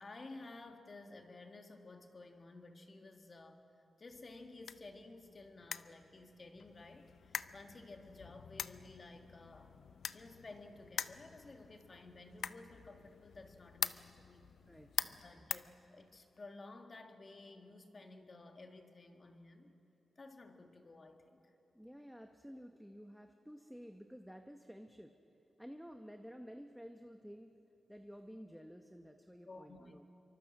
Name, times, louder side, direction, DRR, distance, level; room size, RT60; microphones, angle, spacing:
voice 1, 0.0-9.8 10.1-14.5 15.2-19.7 20.2-21.6 29.5-30.0, left 2 dB, 35° left, 4 dB, 1.9 m, -54 dB
sound 1, 4.1-16.4, left 7 dB, 75° left, 0.5 m, -45 dB
voice 2, 14.7-15.5 21.7-25.1 25.6-27.6 27.9-30.1, equal, ahead, 5 dB, 0.9 m, -52 dB
26.5 x 24.0 x 6.5 m, 2.8 s
wide cardioid pair, 115°, 0 cm